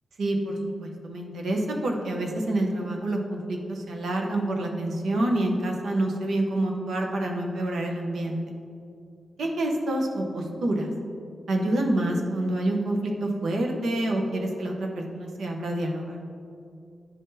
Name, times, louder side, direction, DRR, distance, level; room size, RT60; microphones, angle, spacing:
voice 1, 0.2-8.4 9.4-10.9 11.5-16.2, right 1 dB, 85° right, 1 dB, 0.8 m, -27 dB
9.9 x 3.8 x 2.7 m, 2.5 s
wide cardioid pair, 165°, 0 cm